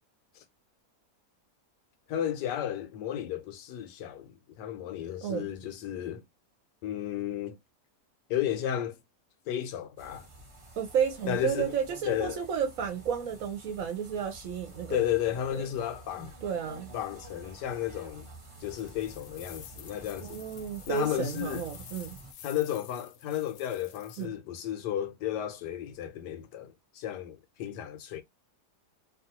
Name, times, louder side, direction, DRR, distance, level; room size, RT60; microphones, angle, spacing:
voice 1, 2.1-6.2 6.8-7.6 8.3-9.0 9.5-10.3 11.2-11.7 12.0-12.4 14.9-16.3 16.9-18.3 18.6-20.4 20.9-21.6 22.4-28.2, left 11 dB, 85° left, 1.3 m, -33 dB
sound 1, 10.0-22.3, right 1 dB, 30° right, 0.6 m, -49 dB
voice 2, 10.8-15.0 15.5-15.6 16.4-16.9 20.2-22.2 24.2-24.3, right 8 dB, 65° right, 0.9 m, -32 dB
sound 2, 18.7-24.3, left 10 dB, 70° left, 0.9 m, -50 dB
3.0 x 2.3 x 2.7 m
omnidirectional pair, 1.8 m